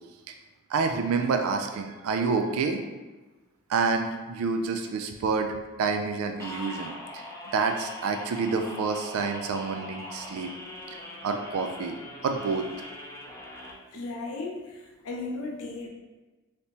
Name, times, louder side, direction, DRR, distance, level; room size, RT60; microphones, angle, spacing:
voice 1, 0.7-2.8 3.7-7.2 7.5-10.5 11.2-12.0 12.2-12.7, right 4 dB, 85° right, 5 dB, 0.3 m, -28 dB
sound 1, 6.4-13.7, left 1 dB, 15° left, 0.5 m, -41 dB
voice 2, 13.9-15.9, left 3 dB, 80° left, 0 dB, 0.6 m, -36 dB
3.3 x 2.8 x 2.8 m, 1.2 s
head